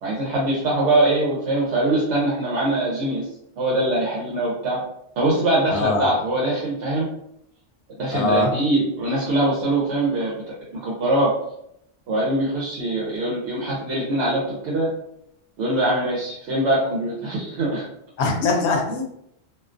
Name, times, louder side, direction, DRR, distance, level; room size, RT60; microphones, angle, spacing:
voice 1, 0.0-3.3 3.6-4.8 5.2-7.1 8.0-10.4 10.8-11.4 12.1-14.9 15.6-17.9, right 1 dB, 80° right, -5 dB, 0.9 m, -22 dB
voice 2, 5.7-6.1 8.1-8.5 18.2-19.0, left 3 dB, 75° left, 1 dB, 0.8 m, -22 dB
2.4 x 2.2 x 2.5 m, 0.77 s
omnidirectional pair, 1.2 m